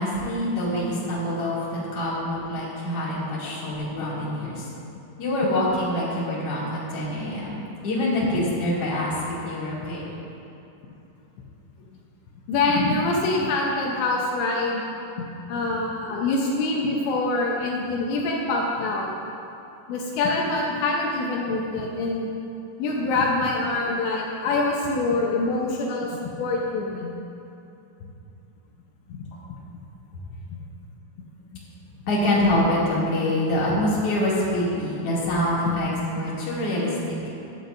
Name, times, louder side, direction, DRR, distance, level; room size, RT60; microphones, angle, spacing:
voice 1, 0.0-4.6 5.2-9.1 9.4-10.1 32.1-37.2, left 1 dB, 40° left, -8 dB, 2.8 m, -25 dB
voice 2, 12.5-14.8 15.2-19.1 19.9-22.3 22.8-27.2 28.0-28.1 29.1-29.3 33.7-33.8 35.6-35.8, left 2 dB, 75° left, -2 dB, 2.9 m, -25 dB
14.5 x 11.5 x 2.6 m, 2.9 s
omnidirectional pair, 5.7 m